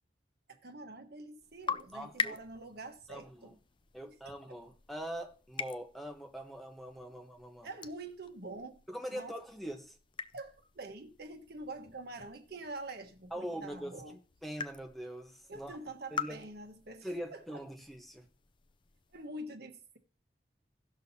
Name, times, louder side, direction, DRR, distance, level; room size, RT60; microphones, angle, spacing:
voice 1, 0.5-3.6 4.0-4.1 4.5-4.6 7.1-7.2 7.6-8.8 9.1-9.3 10.3-14.2 15.5-17.6 19.1-20.0, right 2 dB, 65° right, 1.3 m, -46 dB
sound 1, 1.4-19.3, left 6 dB, 30° left, 0.4 m, -45 dB
voice 2, 1.9-2.4 3.1-3.5 3.9-7.7 8.9-10.0 13.3-14.0 14.4-15.8 16.1-16.4 17.0-18.2, equal, ahead, 1.0 m, -42 dB
17.5 x 6.3 x 2.8 m
head